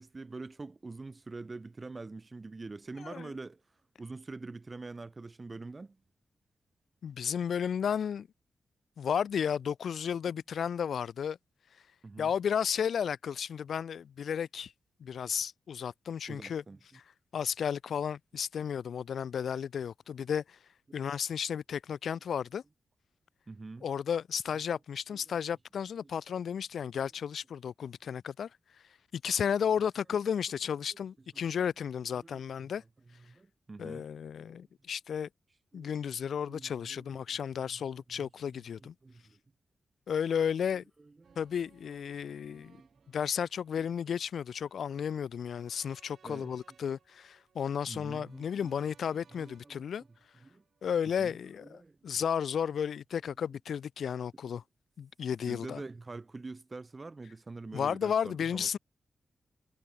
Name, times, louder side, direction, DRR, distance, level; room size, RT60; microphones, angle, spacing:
voice 1, 0.0-3.6 4.0-6.0 12.0-12.3 16.3-16.8 20.9-21.0 23.5-23.9 25.1-25.2 30.3-30.4 31.3-31.4 32.2-32.4 33.3-34.1 34.5-34.6 35.7-35.9 36.5-37.0 37.7-37.8 38.1-38.3 38.8-39.4 40.7-41.4 42.5-43.2 46.2-46.5 47.9-48.8 49.3-49.8 50.4-50.6 51.2-52.0 55.5-58.7, right 3 dB, 30° right, 1.8 m, -45 dB
voice 2, 3.0-3.3 7.0-8.3 9.0-11.4 12.2-14.7 15.0-16.6 16.9-17.0 17.3-20.6 20.9-22.6 23.8-28.5 29.1-32.8 33.8-35.3 35.7-38.9 40.1-40.8 41.4-42.8 43.1-50.0 50.8-54.6 55.0-55.8 57.7-58.8, left 7 dB, 75° left, 0.3 m, -33 dB
sound 1, 41.2-51.4 51.7-51.8, right 7 dB, 70° right, 3.8 m, -66 dB
wide cardioid pair, 115°, 0 cm